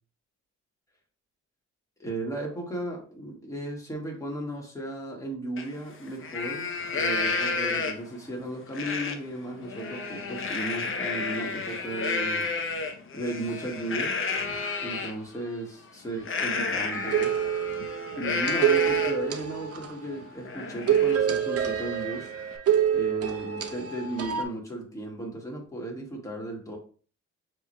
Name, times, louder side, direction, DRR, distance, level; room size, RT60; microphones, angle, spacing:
voice 1, 2.0-12.5 13.1-14.1 14.8-17.4 18.2-22.3 22.9-26.8, right 1 dB, 10° left, 1.7 m, -35 dB
Livestock farm animals working animals, 5.6-5.7 6.1-8.2 8.7-9.2 9.6-15.1 16.2-19.3 19.7-19.8 20.2-22.6, left 4 dB, 45° left, 0.8 m, -31 dB
sound 1, 16.9-20.2 20.9-24.4, right 9 dB, 55° right, 0.7 m, -26 dB
7.1 x 3.2 x 2.3 m
cardioid pair, 90°, 30 cm